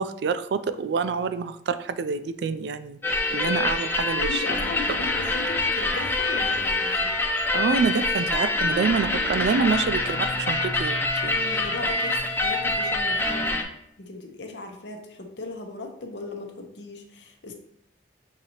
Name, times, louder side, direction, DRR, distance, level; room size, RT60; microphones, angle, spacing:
voice 1, 0.0-4.4 4.9-5.0 7.5-11.8, right 5 dB, 75° right, 12 dB, 0.3 m, -27 dB
sound 1, 3.0-13.6, left 2 dB, 10° left, 0.3 m, -25 dB
voice 2, 4.3-7.1 11.5-13.7 14.0-17.5, left 3 dB, 85° left, 3 dB, 0.8 m, -38 dB
6.4 x 2.7 x 2.9 m, 0.74 s
head